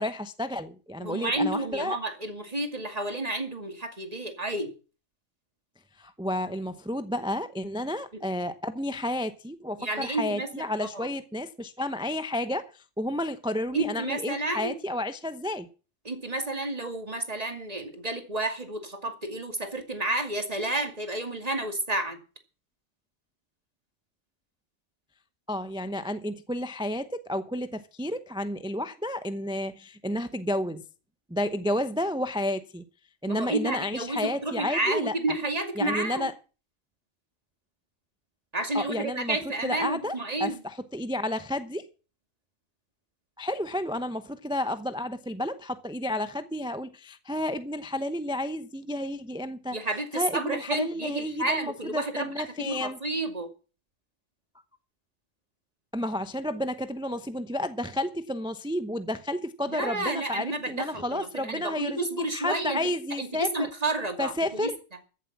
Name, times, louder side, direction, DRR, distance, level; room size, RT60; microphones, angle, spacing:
voice 1, 0.0-2.0 6.0-15.7 25.5-30.8 31.3-32.8 33.2-35.1 35.8-36.3 38.7-39.4 39.6-41.9 43.4-49.8 50.1-53.0 55.9-63.7 64.2-64.8, left 1 dB, 5° right, 0.6 m, -31 dB
voice 2, 1.0-4.7 8.1-8.2 9.8-10.5 10.9-11.1 13.7-14.8 16.0-22.2 33.3-36.3 38.5-40.6 49.7-53.5 59.7-64.7, right 2 dB, 30° right, 2.4 m, -31 dB
14.5 x 7.5 x 7.2 m
omnidirectional pair, 1.4 m